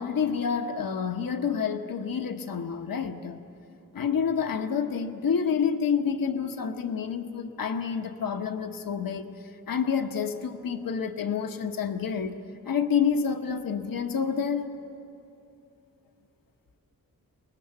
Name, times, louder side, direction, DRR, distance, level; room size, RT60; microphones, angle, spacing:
voice 1, 0.0-3.4 3.9-12.4 12.6-14.7, left 6 dB, 75° left, 6 dB, 1.2 m, -28 dB
29.5 x 20.5 x 8.2 m, 2.8 s
wide cardioid pair, 115°, 35 cm